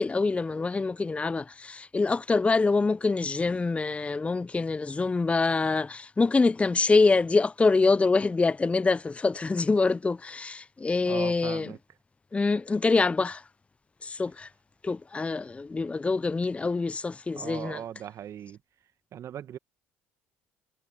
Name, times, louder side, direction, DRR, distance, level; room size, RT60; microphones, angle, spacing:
voice 1, 0.0-11.7 12.3-13.4 14.0-14.5 14.8-17.8, left 3 dB, 20° left, 0.7 m, -25 dB
voice 2, 11.0-11.8 17.3-18.6 19.1-19.6, right 10 dB, 50° right, 1.7 m, -38 dB
hypercardioid pair, 60°, 7 cm